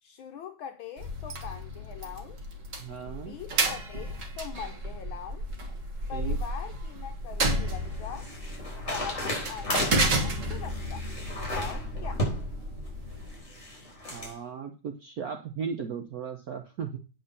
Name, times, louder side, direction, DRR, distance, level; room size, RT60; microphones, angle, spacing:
voice 1, 0.0-2.4 3.0-5.5 6.1-8.3 8.9-11.1 11.3-12.2, left 8 dB, 70° left, 1.5 m, -42 dB
sound 1, 1.0-13.4, right 1 dB, 40° right, 1.6 m, -32 dB
voice 2, 2.8-3.3 6.1-6.4 11.7-11.9 14.1-17.0, right 6 dB, 60° right, 1.0 m, -36 dB
sound 2, 7.0-14.3, left 1 dB, 30° left, 4.1 m, -35 dB
9.0 x 4.3 x 6.6 m
omnidirectional pair, 2.4 m